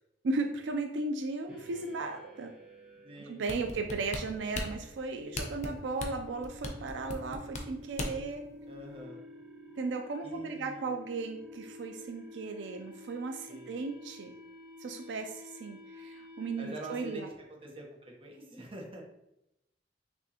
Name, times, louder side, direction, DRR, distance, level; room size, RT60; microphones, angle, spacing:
voice 1, 0.2-2.5 3.3-8.4 9.8-14.3 14.8-17.3, right 3 dB, 85° right, 5 dB, 0.4 m, -36 dB
sound 1, 1.5-17.4, left 1 dB, 5° right, 1.1 m, -51 dB
voice 2, 3.0-3.8 8.6-9.3 10.2-10.9 13.5-13.9 16.6-19.0, right 1 dB, 30° right, -1 dB, 0.9 m, -45 dB
sound 2, 3.5-8.3 8.8-8.9, left 2 dB, 40° left, 0.6 m, -37 dB
6.1 x 2.6 x 2.8 m, 0.85 s
head